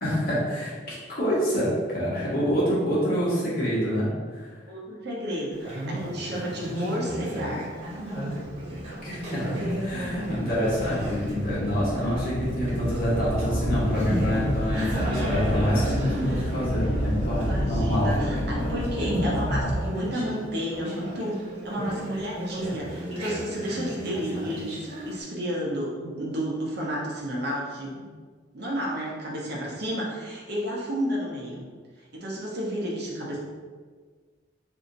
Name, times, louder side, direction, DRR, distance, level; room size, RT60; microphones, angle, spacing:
voice 1, 0.0-4.5 9.0-9.5 9.8-18.1, equal, 55° left, -7 dB, 1.2 m, -27 dB
voice 2, 4.7-7.8 17.5-28.0 28.5-31.6 32.1-33.4, equal, 60° right, -3 dB, 0.8 m, -31 dB
Conversation, 5.5-25.2, equal, 30° right, 1.4 m, -35 dB
sound 1, 8.7-8.8 9.4-20.1, equal, 80° left, 0.6 m, -29 dB
2.8 x 2.6 x 3.8 m, 1.5 s
head